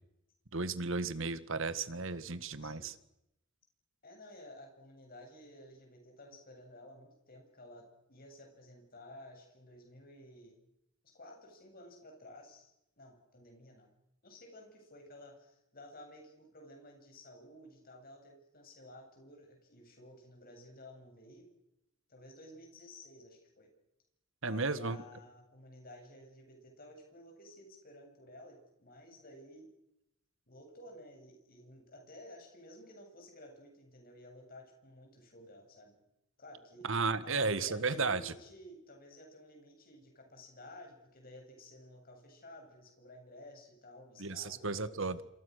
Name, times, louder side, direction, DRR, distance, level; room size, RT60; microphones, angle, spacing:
voice 1, 0.5-2.9 24.4-25.0 36.8-38.3 44.2-45.2, right 4 dB, 65° right, 14 dB, 1.6 m, -34 dB
voice 2, 2.6-2.9 4.0-10.6 11.0-13.9 14.2-21.5 22.1-23.7 24.4-29.7 30.5-36.0 36.4-36.9 37.2-45.1, left 1 dB, 45° left, 3 dB, 7.8 m, -54 dB
27.5 x 27.0 x 6.6 m, 0.84 s
head